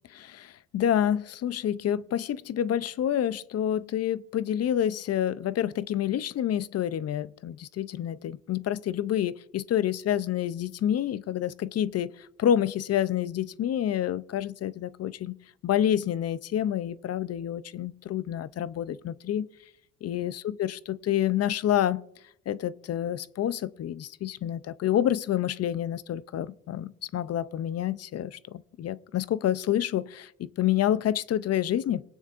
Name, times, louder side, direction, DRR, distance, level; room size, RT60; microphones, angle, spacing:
voice 1, 0.1-15.4 15.6-19.5 20.0-22.0 22.5-32.0, left 10 dB, 55° left, 0.5 m, -28 dB
21.5 x 9.2 x 2.5 m
cardioid pair, 90°, 30 cm